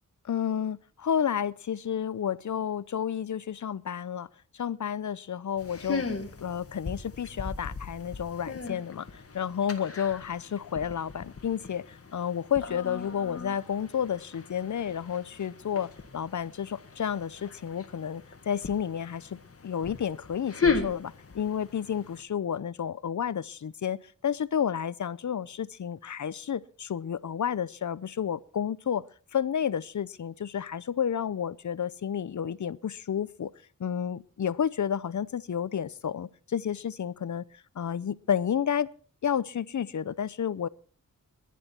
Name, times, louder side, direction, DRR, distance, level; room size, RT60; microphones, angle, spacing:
voice 1, 0.2-4.3 4.5-6.0 6.4-19.4 19.6-24.0 24.2-29.0 29.3-33.5 33.8-37.4 37.8-38.9 39.2-40.7, left 8 dB, 60° left, 0.7 m, -31 dB
sound 1, 5.6-22.2, left 4 dB, 45° left, 1.7 m, -37 dB
22.0 x 10.0 x 4.4 m
wide cardioid pair, 115°, 33 cm